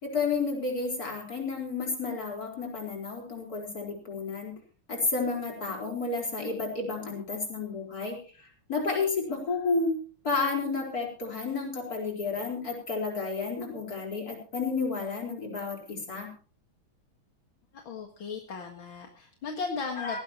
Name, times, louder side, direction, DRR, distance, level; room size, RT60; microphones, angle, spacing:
voice 1, 0.0-4.5 4.9-10.0 10.2-16.3 20.0-20.2, left 4 dB, 45° left, 0 dB, 5.0 m, -31 dB
voice 2, 17.7-20.2, left 5 dB, 70° left, 3 dB, 2.5 m, -36 dB
18.5 x 17.0 x 3.0 m, 0.39 s
omnidirectional pair, 2.3 m